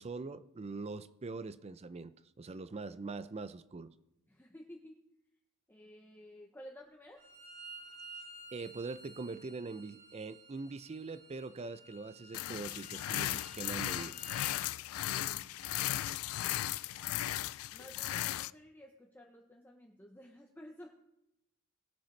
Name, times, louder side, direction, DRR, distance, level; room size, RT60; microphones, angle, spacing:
voice 1, 0.0-3.9 8.5-14.2, right 3 dB, 30° right, 14 dB, 0.4 m, -43 dB
voice 2, 4.3-5.0 5.7-7.2 15.0-15.8 17.7-21.0, equal, 10° left, 1 dB, 0.7 m, -54 dB
Bowed string instrument, 7.2-14.6, right 2 dB, 55° right, 4.0 m, -53 dB
sound 1, 12.3-18.5, left 14 dB, 70° left, 0.3 m, -36 dB
19.0 x 7.0 x 3.2 m, 0.86 s
head